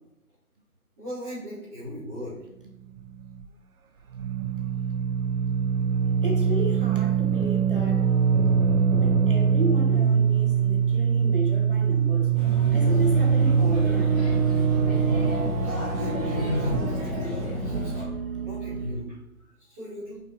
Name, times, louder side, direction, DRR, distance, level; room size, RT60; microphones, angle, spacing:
voice 1, 1.0-2.4 15.5-18.1 18.3-20.2, left 1 dB, 10° right, -15 dB, 2.6 m, -39 dB
sound 1, 3.0-3.5 4.1-19.0, right 7 dB, 70° right, 0.8 m, -23 dB
voice 2, 6.2-8.1 8.9-12.3 12.7-14.3, right 1 dB, 35° right, 0 dB, 1.2 m, -33 dB
Male speech man speaking / Child speech kid speaking / Chatter, 12.3-18.0, left 1 dB, 25° left, 2.9 m, -30 dB
8.0 x 5.4 x 4.4 m, 0.88 s
hypercardioid pair, 175°, 45 cm